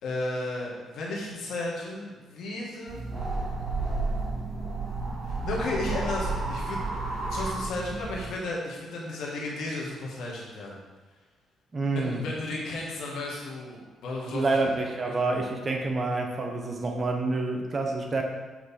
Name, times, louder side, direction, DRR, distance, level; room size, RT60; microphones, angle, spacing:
voice 1, 0.0-3.0 5.3-6.8 7.3-10.8 11.9-14.6, left 2 dB, 80° left, -3 dB, 1.5 m, -34 dB
sound 1, 2.9-8.3, right 3 dB, 60° right, 1.9 m, -31 dB
voice 2, 11.7-12.2 14.3-18.2, right 3 dB, 35° right, 2 dB, 0.9 m, -28 dB
7.6 x 3.2 x 4.2 m, 1.3 s
cardioid pair, 90°, 0 cm